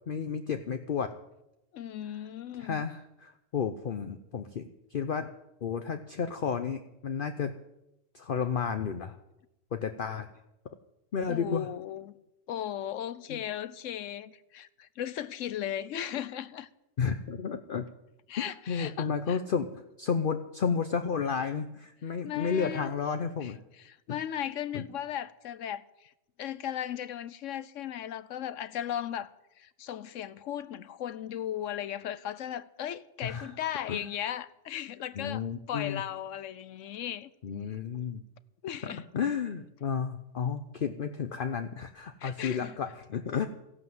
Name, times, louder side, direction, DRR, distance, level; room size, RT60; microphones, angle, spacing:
voice 1, 0.1-1.1 2.6-5.3 5.6-7.5 8.1-9.2 9.7-10.3 11.1-11.7 13.3-13.4 17.0-17.9 18.5-19.7 20.0-23.6 24.1-24.2 24.7-24.9 33.2-33.5 33.9-34.0 35.1-36.0 37.4-38.2 38.8-43.5, left 6 dB, 50° left, 0.9 m, -32 dB
voice 2, 1.7-2.8 11.3-12.1 12.5-16.7 18.3-19.4 22.2-22.9 23.4-26.1 26.4-29.3 29.6-37.3 38.6-39.0 42.2-42.7, left 10 dB, 85° left, 1.1 m, -37 dB
14.5 x 11.0 x 7.8 m
omnidirectional pair, 1.3 m